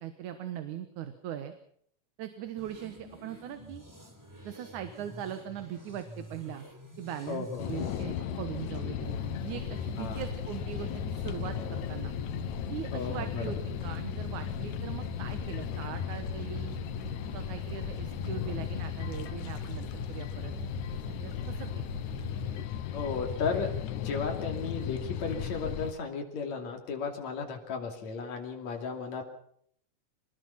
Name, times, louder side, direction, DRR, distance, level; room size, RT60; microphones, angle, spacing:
voice 1, 0.0-1.5 2.2-3.8 4.4-6.6 7.0-9.2 9.4-12.1 12.7-16.8 17.3-20.5 21.2-21.9, right 10 dB, 90° right, 9 dB, 2.7 m, -40 dB
the siths, 2.6-8.0, equal, 5° right, 3.2 m, -49 dB
voice 2, 7.3-7.7 10.0-10.3 12.9-13.4 22.9-29.2, left 5 dB, 70° left, 2 dB, 4.1 m, -35 dB
sound 1, 7.6-25.9, left 10 dB, 90° left, 2.5 m, -36 dB
sound 2, 9.0-22.7, right 2 dB, 60° right, 3.5 m, -43 dB
25.5 x 19.5 x 5.8 m, 0.66 s
omnidirectional pair, 3.3 m